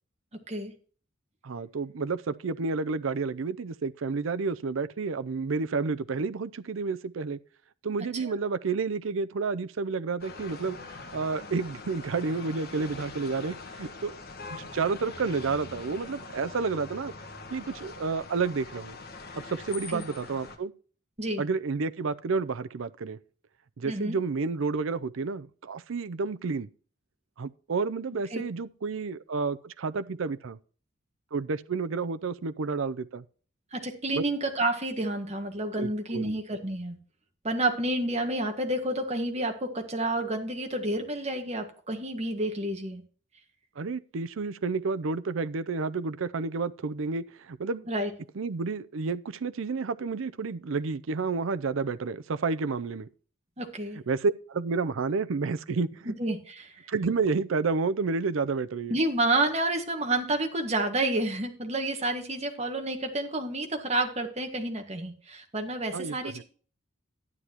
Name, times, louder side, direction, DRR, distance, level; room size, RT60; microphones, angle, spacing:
voice 1, 1.4-7.4 7.8-14.2 14.5-17.1 17.5-19.0 19.4-20.7 21.4-23.2 23.8-26.7 27.4-30.6 31.3-33.2 34.2-34.3 35.7-36.4 43.8-47.9 48.4-53.1 54.1-56.1 56.9-59.0 65.9-66.4, right 4 dB, 70° right, 0.5 m, -30 dB
sound 1, 10.2-20.6, left 3 dB, 50° left, 1.4 m, -43 dB
voice 2, 23.8-24.2 28.3-28.4 33.7-37.0 37.4-43.0 47.9-48.1 53.6-54.0 56.1-56.7 58.9-66.4, right 2 dB, 30° right, 1.7 m, -29 dB
12.0 x 9.6 x 2.9 m
head